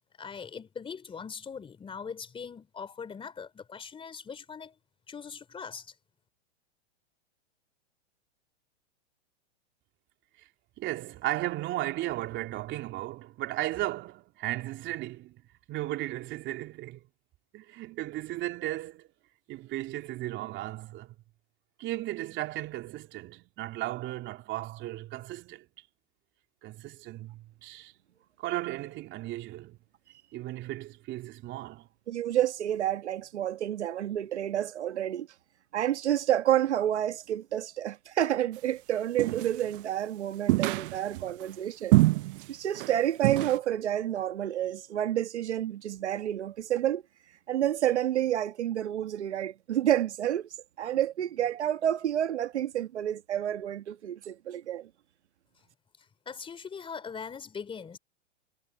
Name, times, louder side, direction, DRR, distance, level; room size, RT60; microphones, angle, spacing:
voice 1, 0.2-4.8 5.1-5.9 56.2-58.0, left 6 dB, 15° left, 3.1 m, -41 dB
voice 2, 10.8-15.4 15.7-17.0 17.5-19.0 19.5-21.1 21.8-25.6 26.6-27.9 28.4-29.8 30.3-31.9, right 16 dB, 35° right, 3.2 m, -35 dB
voice 3, 32.1-35.3 35.7-42.0 42.5-47.0 47.5-50.5 50.8-54.9, right 11 dB, 80° right, 1.5 m, -29 dB
sound 1, 39.2-39.8 40.5-41.3 41.9-42.5 42.7-42.9 43.2-43.6, right 20 dB, 50° right, 0.8 m, -25 dB
hypercardioid pair, 125°, 33 cm